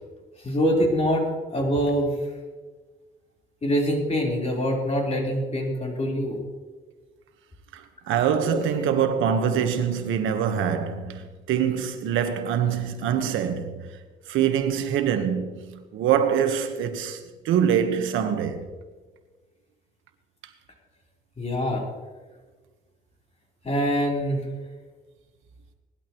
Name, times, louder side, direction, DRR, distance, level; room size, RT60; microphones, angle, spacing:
voice 1, 0.4-1.3 1.5-2.1 3.6-6.4 8.4-8.6 21.4-21.8 23.6-24.4, equal, 30° left, 4.1 m, -24 dB
voice 2, 7.7-13.9 14.3-18.7, right 8 dB, 90° right, 1.3 m, -24 dB
19.0 x 12.0 x 3.1 m
cardioid pair, 90°, 20 cm